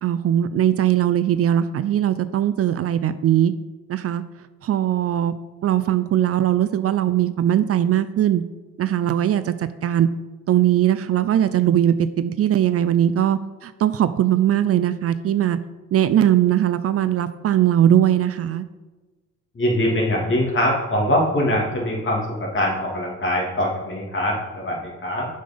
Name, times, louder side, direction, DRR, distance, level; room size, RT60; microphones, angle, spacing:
voice 1, 0.0-3.5 3.9-4.2 4.6-5.3 5.6-8.4 8.8-10.1 10.5-15.6 15.9-18.7, right 11 dB, 50° right, 13 dB, 0.5 m, -20 dB
voice 2, 19.5-25.3, left 1 dB, 40° left, -2 dB, 2.8 m, -23 dB
7.6 x 5.2 x 5.4 m, 1.2 s
cardioid pair, 90°, 30 cm